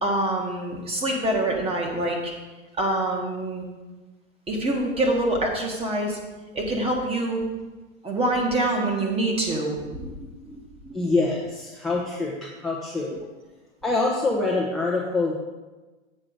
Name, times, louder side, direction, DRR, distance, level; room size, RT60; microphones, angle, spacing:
voice 1, 0.0-2.3 2.8-3.6 4.5-6.2 6.5-7.4 8.0-11.0, right 1 dB, 15° right, 0 dB, 1.6 m, -26 dB
voice 2, 10.9-13.2 13.8-15.3, left 3 dB, ahead, -5 dB, 0.9 m, -25 dB
7.8 x 4.9 x 6.5 m, 1.2 s
hypercardioid pair, 125°, 39 cm